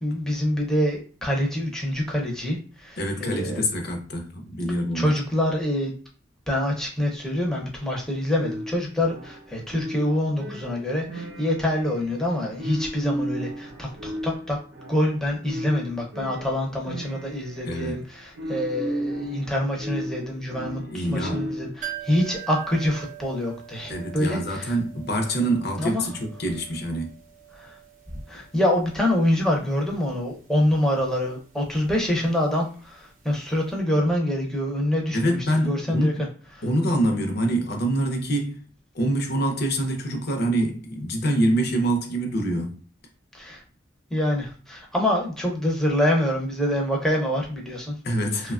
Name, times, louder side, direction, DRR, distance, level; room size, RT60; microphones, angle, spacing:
voice 1, 0.0-3.6 4.9-5.9 6.5-14.6 14.9-24.7 25.8-26.0 27.5-27.8 28.3-36.3 36.5-36.6 43.3-43.6 44.1-47.9 48.4-48.5, left 1 dB, 5° left, 0.6 m, -26 dB
voice 2, 3.0-5.1 17.6-18.0 20.9-21.5 23.9-27.1 35.1-36.2 36.6-38.6 38.9-42.7 48.0-48.5, right 1 dB, 60° left, 0.6 m, -25 dB
sound 1, 8.3-21.9, equal, 85° right, 0.6 m, -35 dB
sound 2, 21.8-33.4 33.7-33.8, right 13 dB, 45° right, 0.6 m, -44 dB
2.9 x 2.2 x 2.3 m
head